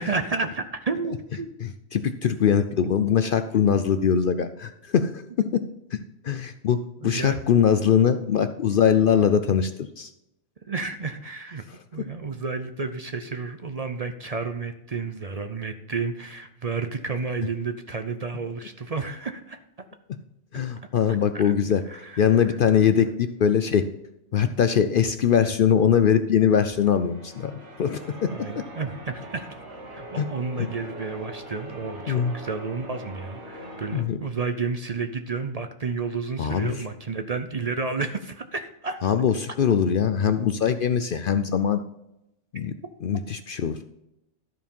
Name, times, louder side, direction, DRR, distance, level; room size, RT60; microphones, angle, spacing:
voice 1, 0.0-1.5 3.6-3.7 7.0-7.4 10.7-11.6 11.9-19.6 21.3-21.5 21.9-22.3 28.3-29.5 29.9-39.0, right 4 dB, 45° right, 8 dB, 0.5 m, -31 dB
voice 2, 1.6-5.6 5.9-6.0 6.2-10.1 11.7-11.8 20.5-21.8 22.2-23.9 24.3-28.3 30.2-30.3 30.6-30.7 32.1-32.3 33.9-34.2 36.4-36.8 39.0-41.8 42.5-42.7 43.0-43.8, left 8 dB, 60° left, 10 dB, 0.6 m, -22 dB
Church bell, 26.7-34.0, equal, 60° right, 1.7 m, -41 dB
13.0 x 4.7 x 5.4 m, 0.85 s
omnidirectional pair, 1.4 m